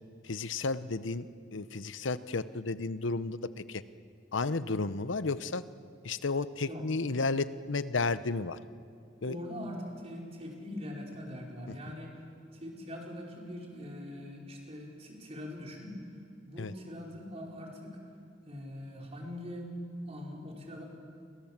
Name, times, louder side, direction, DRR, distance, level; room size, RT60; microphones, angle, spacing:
voice 1, 0.2-1.3 1.5-3.8 4.3-5.6 6.0-8.6 9.2-9.4 16.6-16.7, left 3 dB, 85° left, 14 dB, 0.8 m, -32 dB
voice 2, 9.2-12.2 12.5-16.0 16.4-18.0 18.4-19.7 20.1-20.9, left 1 dB, 35° right, -1 dB, 4.9 m, -42 dB
29.0 x 24.5 x 7.4 m, 2.3 s
head